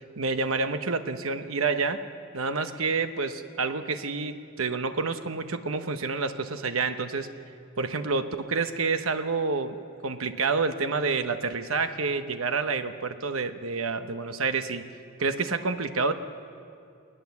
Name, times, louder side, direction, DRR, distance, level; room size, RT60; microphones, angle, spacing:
voice 1, 0.0-2.0 2.3-7.3 7.8-9.8 10.0-14.8 15.2-16.1, right 4 dB, 75° right, 9 dB, 1.0 m, -28 dB
20.0 x 20.0 x 7.2 m, 2.4 s
head